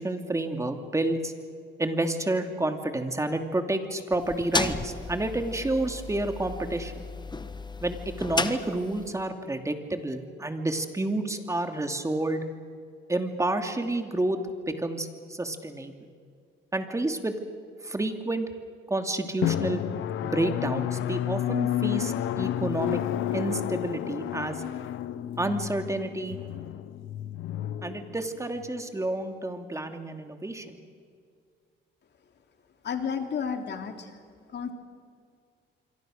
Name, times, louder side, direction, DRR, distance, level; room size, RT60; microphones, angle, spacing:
voice 1, 0.0-1.3 1.8-7.0 7.8-12.4 13.1-14.4 14.7-15.9 16.7-17.4 17.8-18.4 18.9-19.8 20.2-23.0 23.3-24.6 25.4-26.4 27.8-30.8, right 2 dB, 15° right, 6 dB, 2.7 m, -29 dB
sound 1, 4.1-9.2, left 3 dB, 20° left, 1.4 m, -34 dB
Drum, 19.4-28.7, left 11 dB, 85° left, 0.9 m, -31 dB
voice 2, 32.8-34.2 34.5-34.7, left 6 dB, 60° left, 5 dB, 3.0 m, -32 dB
26.0 x 24.5 x 6.6 m, 2.2 s
cardioid pair, 90°, 20 cm